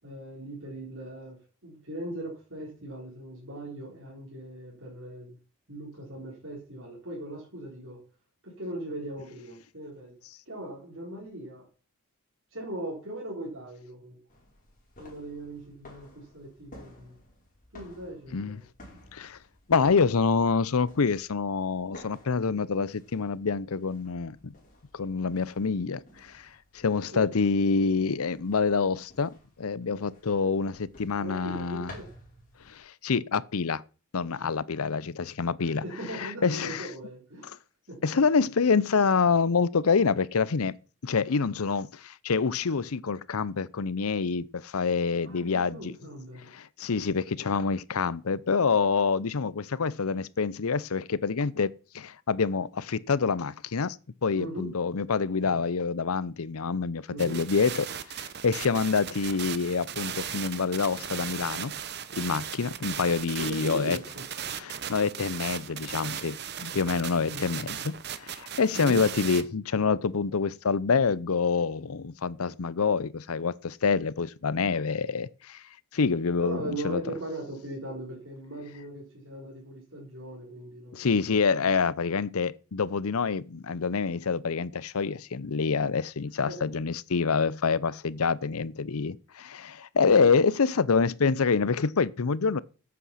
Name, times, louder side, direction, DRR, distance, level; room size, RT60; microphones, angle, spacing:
voice 1, 0.0-5.4 5.7-8.0 8.4-10.1 10.5-11.7 12.5-14.2 15.0-17.2 17.7-18.6 27.1-27.3 31.2-32.1 35.6-37.5 37.9-38.0 45.2-46.5 54.3-54.7 57.1-57.4 63.4-64.2 67.3-67.5 68.7-69.0 76.4-81.7 86.4-86.7 90.1-90.4, right 1 dB, 65° right, 4.1 m, -39 dB
sound 1, 14.3-32.8, left 1 dB, 35° left, 5.6 m, -54 dB
voice 2, 19.7-24.5 24.9-26.5 26.7-31.9 32.7-33.8 34.1-35.8 36.2-36.9 38.0-40.7 41.0-45.9 46.5-54.0 54.2-57.9 58.2-61.7 62.1-64.0 64.6-75.6 75.9-77.0 80.9-92.6, left 5 dB, 80° left, 0.6 m, -27 dB
sound 2, 57.2-69.4, right 8 dB, 45° right, 0.9 m, -37 dB
11.0 x 8.5 x 5.8 m
head